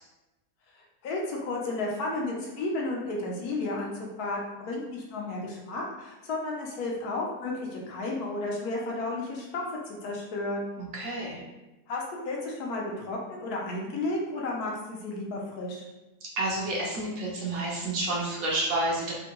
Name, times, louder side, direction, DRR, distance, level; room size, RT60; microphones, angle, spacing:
voice 1, 1.0-10.7 11.9-15.8, left 2 dB, 75° left, -2 dB, 1.2 m, -33 dB
voice 2, 10.8-11.4 16.2-19.1, right 2 dB, 65° right, -3 dB, 1.1 m, -30 dB
3.6 x 2.2 x 2.9 m, 1.0 s
omnidirectional pair, 1.7 m